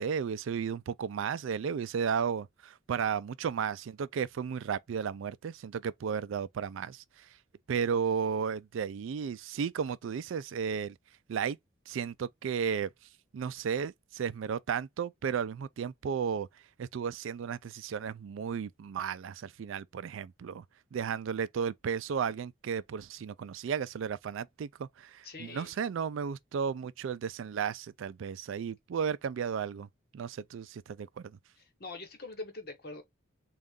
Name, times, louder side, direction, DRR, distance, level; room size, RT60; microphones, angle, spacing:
voice 1, 0.0-7.3 7.7-11.0 11.3-11.6 11.9-12.9 13.3-16.5 16.8-20.6 20.9-29.9 30.1-31.3, right 7 dB, 70° right, 0.3 m, -34 dB
voice 2, 25.2-25.7 31.6-33.0, left 3 dB, 50° left, 1.1 m, -43 dB
3.8 x 2.4 x 3.5 m
head